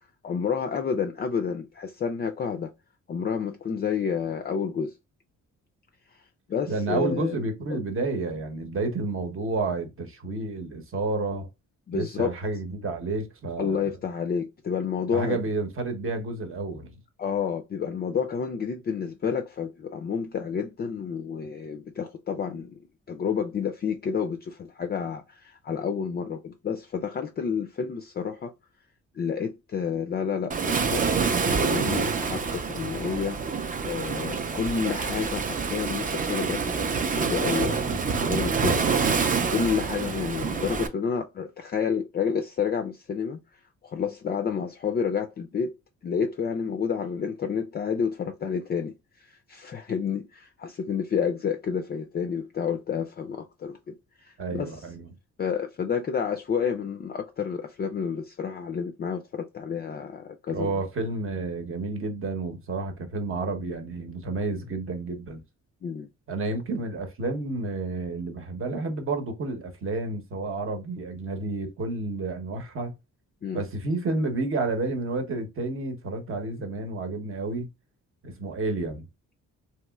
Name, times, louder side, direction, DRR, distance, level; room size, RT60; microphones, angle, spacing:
voice 1, 0.2-2.7 3.1-4.9 6.5-7.4 7.7-7.8 11.9-12.3 13.6-15.4 17.2-22.8 23.1-28.5 29.1-31.0 31.5-33.4 33.8-38.9 39.5-43.4 43.8-45.7 46.0-54.8 55.4-60.7 65.8-66.1 73.4-73.6, left 6 dB, 35° left, 0.4 m, -30 dB
voice 2, 6.7-11.5 11.9-13.9 15.1-16.9 54.4-55.1 60.5-65.4 66.3-72.9 73.5-77.7 78.2-79.1, right 3 dB, 45° right, 0.9 m, -30 dB
Waves surf, 30.5-40.9, right 5 dB, 30° right, 0.5 m, -27 dB
3.0 x 2.9 x 2.2 m
cardioid pair, 90°, 30 cm